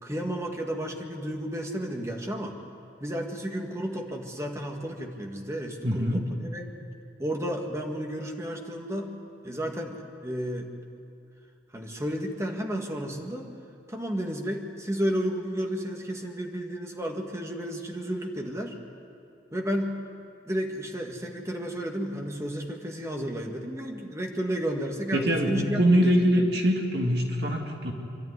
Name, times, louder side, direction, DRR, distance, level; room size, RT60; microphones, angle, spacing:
voice 1, 0.0-2.6 3.0-6.6 7.2-9.1 9.4-10.7 11.7-13.5 13.9-18.8 19.5-19.9 20.5-26.2, equal, 15° right, 2 dB, 1.8 m, -32 dB
voice 2, 5.8-6.3 25.1-27.9, equal, 60° right, 1 dB, 2.2 m, -23 dB
26.5 x 12.0 x 9.6 m, 2.6 s
head